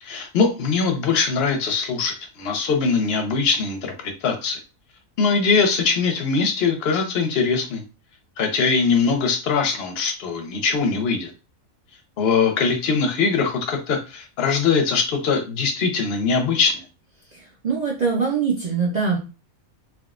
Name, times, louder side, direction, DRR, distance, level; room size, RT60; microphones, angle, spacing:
voice 1, 0.0-4.6 5.2-7.8 8.4-11.3 12.2-16.7, left 5 dB, 55° left, 4 dB, 0.8 m, -21 dB
voice 2, 17.3-19.2, right 5 dB, 60° right, -2 dB, 0.4 m, -23 dB
3.5 x 2.3 x 2.3 m, 0.30 s
omnidirectional pair, 1.5 m